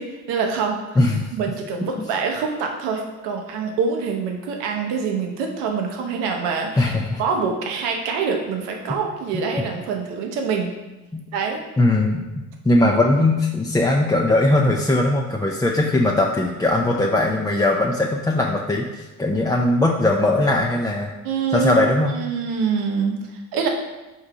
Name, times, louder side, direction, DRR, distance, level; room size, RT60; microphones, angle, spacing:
voice 1, 0.0-0.8 1.3-6.9 7.2-10.7 11.3-11.6 21.2-23.7, right 5 dB, 80° right, 2 dB, 0.8 m, -25 dB
voice 2, 1.0-1.3 1.8-2.1 6.8-7.2 9.3-9.7 11.1-11.2 11.8-21.1 21.5-22.1, left 2 dB, 10° left, -1 dB, 0.4 m, -20 dB
3.7 x 2.7 x 4.6 m, 1.1 s
hypercardioid pair, 55°, 41 cm